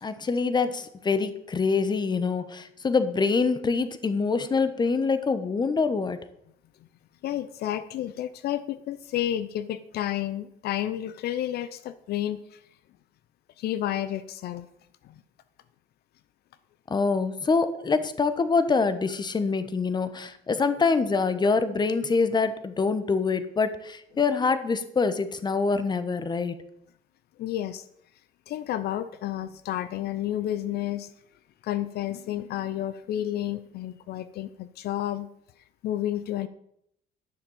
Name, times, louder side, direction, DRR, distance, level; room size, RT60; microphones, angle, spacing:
voice 1, 0.0-6.2 16.9-26.5, left 4 dB, 25° left, 12 dB, 1.1 m, -25 dB
voice 2, 7.2-12.6 13.6-14.7 15.1-15.2 27.4-27.8 28.5-31.1 31.6-35.3 35.8-36.5, left 12 dB, 70° left, 14 dB, 0.7 m, -31 dB
11.0 x 6.8 x 7.2 m, 0.74 s
cardioid pair, 110°, 17 cm